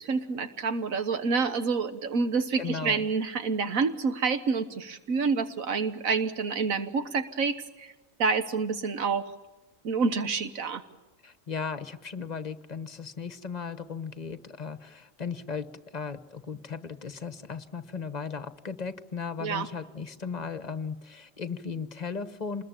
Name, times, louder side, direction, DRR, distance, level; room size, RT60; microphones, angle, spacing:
voice 1, 0.0-7.9 8.2-9.2 9.8-10.8 19.4-19.7, right 4 dB, 90° right, 10 dB, 1.6 m, -28 dB
voice 2, 2.6-3.1 11.2-22.7, left 5 dB, 35° left, 12 dB, 1.1 m, -36 dB
27.0 x 21.0 x 8.9 m, 1.1 s
omnidirectional pair, 1.4 m